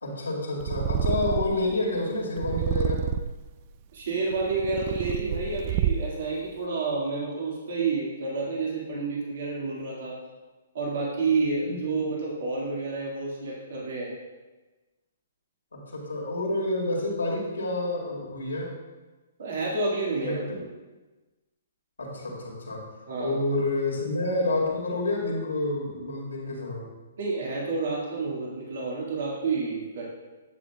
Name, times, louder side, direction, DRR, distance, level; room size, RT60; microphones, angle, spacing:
voice 1, 0.0-3.0 11.6-12.1 15.7-18.8 20.2-20.6 22.0-22.8 23.2-26.9, left 2 dB, 90° left, -3 dB, 2.3 m, -29 dB
Purr, 0.6-1.7 2.4-3.5 4.2-6.3, right 8 dB, 40° right, 0.3 m, -28 dB
voice 2, 3.9-10.1 10.7-14.1 19.4-20.7 23.1-23.4 27.2-30.0, right 3 dB, 65° right, -4 dB, 2.0 m, -29 dB
9.6 x 7.2 x 2.4 m, 1.2 s
hypercardioid pair, 135°, 0 cm